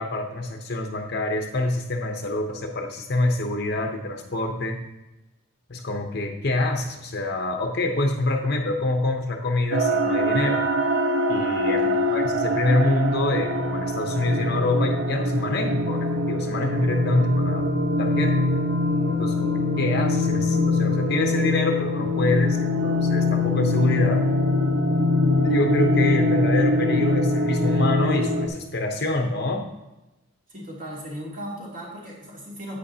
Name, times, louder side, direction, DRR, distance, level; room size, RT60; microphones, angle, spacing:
voice 1, 0.0-4.8 5.7-10.6 11.3-17.7 18.0-18.5 19.1-24.2 25.4-29.7, left 2 dB, 50° left, 3 dB, 0.8 m, -26 dB
sound 1, 9.7-28.5, left 1 dB, 60° right, 0.9 m, -23 dB
voice 2, 11.8-12.2 30.5-32.8, equal, 40° right, -4 dB, 2.8 m, -37 dB
10.0 x 8.4 x 2.8 m, 1.0 s
head